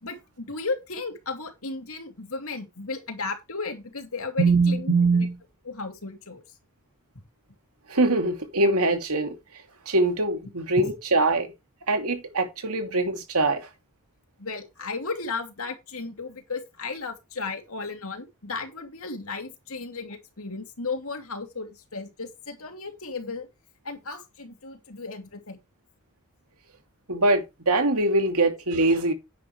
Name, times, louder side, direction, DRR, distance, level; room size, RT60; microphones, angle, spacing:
voice 1, 0.0-5.3 5.6-6.4 10.8-10.9 14.4-23.5 23.8-25.6, left 3 dB, 70° left, 2.8 m, -35 dB
voice 2, 4.4-5.4 7.9-9.3 9.9-11.5 11.9-13.7 27.1-29.1, right 2 dB, 80° right, 2.8 m, -23 dB
11.0 x 9.3 x 3.2 m
head